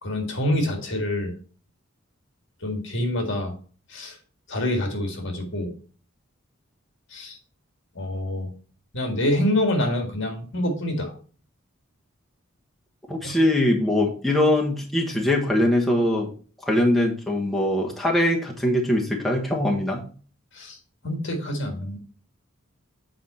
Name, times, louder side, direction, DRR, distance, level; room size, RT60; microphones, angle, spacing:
voice 1, 0.0-1.3 2.6-3.5 3.9-4.1 4.5-5.7 7.1-7.4 8.0-8.5 8.9-11.1 13.2-13.4 20.6-20.8 21.0-22.0, left 1 dB, 60° left, 3 dB, 1.8 m, -26 dB
voice 2, 13.1-16.3 16.6-20.0, left 1 dB, ahead, -2 dB, 1.2 m, -22 dB
7.6 x 4.6 x 4.2 m, 0.40 s
head